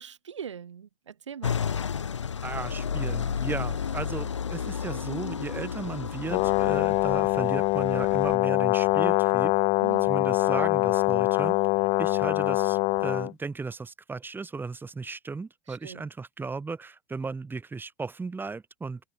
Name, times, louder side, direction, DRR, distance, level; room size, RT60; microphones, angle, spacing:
voice 1, 0.0-1.6 9.8-10.2 15.7-16.0, right 8 dB, 85° right, 4.3 m, -41 dB
sound 1, 1.4-8.3, left 7 dB, 85° left, 1.9 m, -32 dB
voice 2, 2.4-9.5 10.0-11.6 12.0-19.0, right 4 dB, 15° right, 6.3 m, -35 dB
Brass instrument, 6.3-13.3, left 24 dB, 45° left, 0.9 m, -24 dB
hypercardioid pair, 100°, 15 cm